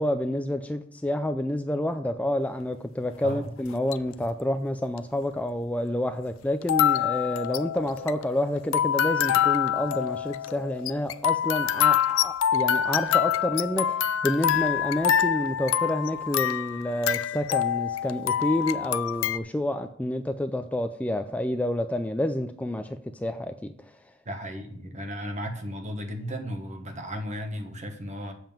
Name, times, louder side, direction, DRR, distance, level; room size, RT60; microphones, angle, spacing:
voice 1, 0.0-23.7, left 1 dB, 5° left, 0.4 m, -29 dB
sound 1, 3.7-4.1 5.0-5.1 6.6-19.4, left 9 dB, 70° left, 0.4 m, -26 dB
voice 2, 24.2-28.3, equal, 35° right, 1.3 m, -35 dB
7.6 x 5.3 x 7.2 m
head